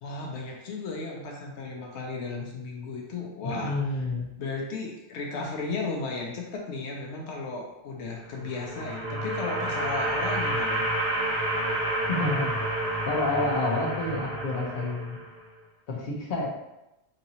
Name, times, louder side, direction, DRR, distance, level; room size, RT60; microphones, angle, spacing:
voice 1, 0.0-3.8 4.4-10.9, left 3 dB, 85° left, 0 dB, 0.9 m, -35 dB
voice 2, 3.4-4.3 12.1-12.5 13.1-15.2 15.9-16.5, left 2 dB, 55° left, -2 dB, 0.9 m, -29 dB
sound 1, 8.3-15.4, right 1 dB, 30° right, 1.1 m, -29 dB
4.0 x 2.9 x 2.7 m, 0.93 s
omnidirectional pair, 1.1 m